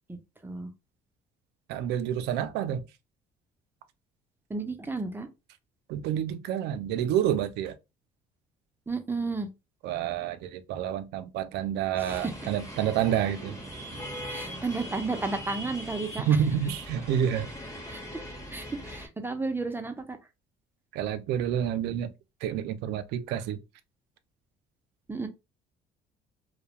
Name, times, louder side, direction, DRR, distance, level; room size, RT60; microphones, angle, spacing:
voice 1, 0.1-0.7 4.5-5.3 8.9-9.5 12.0-12.3 14.3-16.3 17.9-18.2 18.5-20.2 25.1-25.3, right 3 dB, 10° right, 0.4 m, -33 dB
voice 2, 1.7-2.8 5.9-7.8 9.8-13.6 16.3-17.5 20.9-22.1 22.4-23.6, right 9 dB, 80° right, 0.4 m, -28 dB
sound 1, 12.1-19.1, equal, 15° left, 0.8 m, -40 dB
2.3 x 2.1 x 2.8 m
cardioid pair, 110°, 17 cm